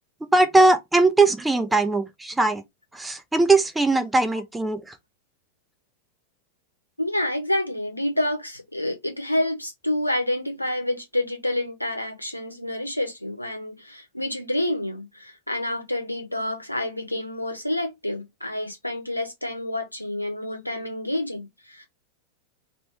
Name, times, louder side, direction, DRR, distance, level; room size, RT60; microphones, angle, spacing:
voice 1, 0.3-2.6 2.9-4.8, right 2 dB, 5° right, 0.6 m, -20 dB
voice 2, 7.0-21.8, left 1 dB, 90° left, 1.0 m, -28 dB
3.1 x 3.0 x 4.5 m
figure-of-eight pair, 90°, 0 cm